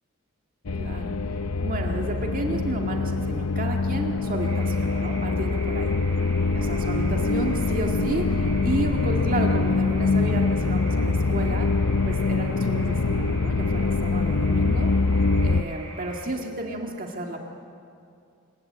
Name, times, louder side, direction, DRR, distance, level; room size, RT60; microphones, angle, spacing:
sound 1, 0.7-15.6, left 3 dB, 90° left, 0.7 m, -24 dB
voice 1, 0.7-5.9 6.5-11.7 12.0-14.9 15.4-17.4, right 1 dB, 40° right, 1 dB, 2.0 m, -32 dB
sound 2, 4.4-16.2, right 3 dB, 85° right, 7.6 m, -44 dB
26.5 x 21.5 x 8.7 m, 2.4 s
head